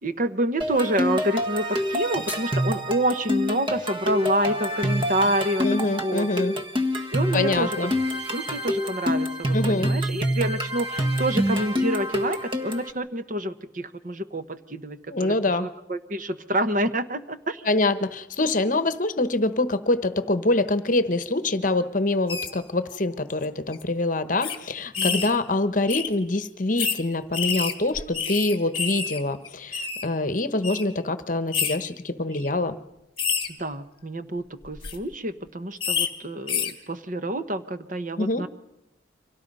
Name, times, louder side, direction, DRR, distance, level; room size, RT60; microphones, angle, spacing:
voice 1, 0.0-5.7 6.0-6.3 7.1-7.8 8.3-17.6 25.0-25.2 33.5-38.5, right 1 dB, 45° right, 10 dB, 1.0 m, -28 dB
sound 1, 0.6-12.9, equal, 25° right, 1.5 m, -27 dB
sound 2, 1.8-2.8, left 2 dB, 10° right, 2.2 m, -40 dB
voice 2, 5.6-6.5 7.3-7.9 9.5-9.9 15.1-15.7 17.7-32.8 38.2-38.4, left 2 dB, 45° left, 12 dB, 1.1 m, -25 dB
sound 3, 22.3-22.5 23.3-23.4 23.7-23.8 24.4-24.6 24.9-25.3 25.9-26.1 26.8-27.0 27.3-29.2 29.4-30.0 30.6-30.8 31.5-31.8 32.3-32.5 33.2-33.5 34.6-35.0 35.8-36.1 36.5-36.7, left 6 dB, 25° left, 2.0 m, -27 dB
30.0 x 25.0 x 5.5 m, 0.88 s
head